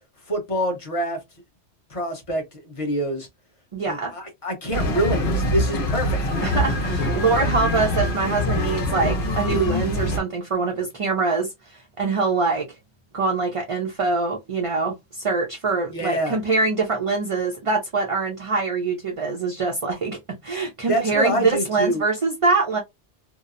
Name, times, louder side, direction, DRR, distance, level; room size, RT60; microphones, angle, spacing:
voice 1, 0.3-1.2 1.9-3.3 3.9-6.4 15.9-16.4 20.9-22.0, right 1 dB, 35° left, 0.8 m, -26 dB
voice 2, 3.7-4.1 6.4-12.7 13.1-22.8, right 4 dB, 40° right, 0.5 m, -24 dB
sound 1, 4.7-10.2, left 1 dB, 65° left, 1.0 m, -24 dB
2.8 x 2.0 x 2.4 m
omnidirectional pair, 1.2 m